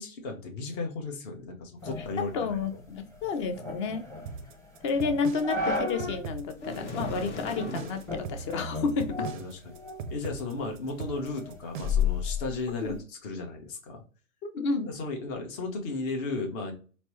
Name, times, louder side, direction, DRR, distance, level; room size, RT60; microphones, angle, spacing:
voice 1, 0.0-2.6 9.3-9.7 10.1-14.0 14.8-16.7, left 3 dB, 40° left, 2 dB, 1.0 m, -35 dB
sound 1, 1.8-6.3 6.6-6.7 7.4-7.7 8.1-10.2 10.6-13.0, left 4 dB, 10° left, 0.8 m, -34 dB
voice 2, 2.2-4.0 4.8-9.3 12.8-13.0 14.4-14.9, left 4 dB, 25° left, 7 dB, 0.4 m, -30 dB
sound 2, 4.3-12.2, right 6 dB, 40° right, 0.4 m, -40 dB
sound 3, 6.6-8.1, left 2 dB, 60° left, 1.2 m, -38 dB
4.2 x 2.1 x 3.0 m, 0.37 s
hypercardioid pair, 115°, 39 cm